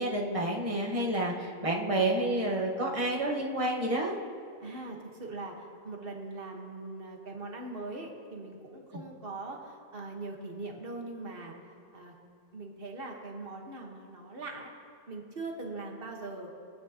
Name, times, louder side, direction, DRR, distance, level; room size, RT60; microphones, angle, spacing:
voice 1, 0.0-4.2 8.9-9.0, right 1 dB, 30° right, -2 dB, 1.4 m, -29 dB
voice 2, 4.6-5.6 5.8-11.5 11.9-12.1 12.5-14.7 15.1-16.5, right 2 dB, 60° right, 1 dB, 1.6 m, -41 dB
23.0 x 9.2 x 2.9 m, 2.3 s
omnidirectional pair, 1.1 m